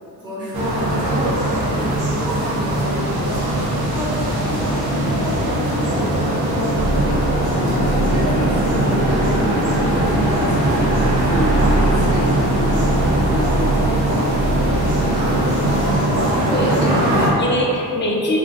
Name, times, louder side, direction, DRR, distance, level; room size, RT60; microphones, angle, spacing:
voice 1, 0.2-15.0, equal, 10° right, -14 dB, 0.9 m, -30 dB
sound 1, 0.5-17.3, right 1 dB, 85° right, 0.7 m, -20 dB
sound 2, 2.5-15.9, left 2 dB, 55° left, 0.8 m, -34 dB
sound 3, 6.7-16.0, right 2 dB, 40° right, 0.7 m, -23 dB
voice 2, 16.1-18.4, left 1 dB, 30° left, -3 dB, 0.5 m, -22 dB
2.4 x 2.3 x 3.8 m, 2.8 s
cardioid pair, 125°, 37 cm